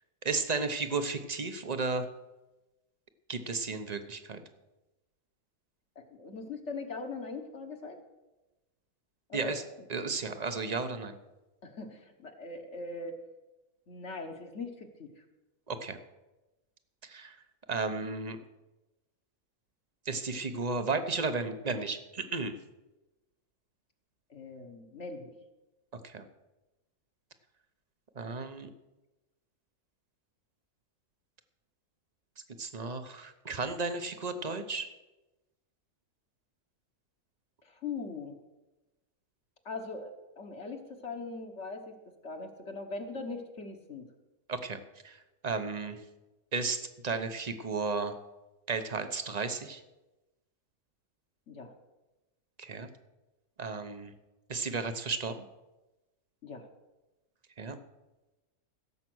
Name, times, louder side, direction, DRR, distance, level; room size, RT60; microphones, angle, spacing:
voice 1, 0.2-2.1 3.3-4.4 9.3-9.6 9.9-11.2 15.7-16.0 17.0-17.4 17.7-18.4 20.1-22.5 26.0-26.2 28.2-28.7 32.6-34.9 44.5-44.8 45.0-45.2 45.4-46.0 46.5-48.2 48.7-49.8 52.6-52.9 53.6-54.1 54.5-55.4 57.6-57.8, right 4 dB, 35° right, 9 dB, 0.7 m, -33 dB
voice 2, 5.9-8.0 9.3-9.6 11.6-13.2 13.9-15.2 24.3-25.3 37.6-38.4 39.6-42.0 42.2-44.1 51.5-51.7 56.4-56.7, left 3 dB, 50° left, 4 dB, 1.4 m, -41 dB
16.5 x 7.4 x 6.2 m, 1.1 s
omnidirectional pair, 1.6 m